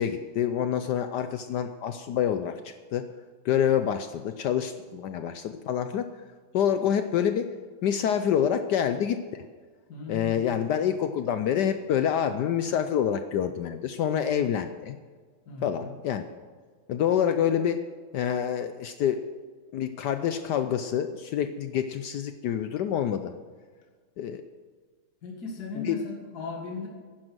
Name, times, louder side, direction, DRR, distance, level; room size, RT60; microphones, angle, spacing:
voice 1, 0.0-3.0 3.4-6.1 6.5-7.5 7.8-9.4 10.1-15.0 15.6-16.2 16.9-17.8 18.1-19.2 19.7-23.3 24.2-24.4 25.8-26.0, left 9 dB, 70° left, 9 dB, 1.0 m, -27 dB
voice 2, 9.9-10.7 15.5-15.9 25.2-26.9, left 3 dB, 50° left, 0 dB, 2.3 m, -38 dB
11.0 x 10.5 x 6.2 m, 1.5 s
omnidirectional pair, 2.3 m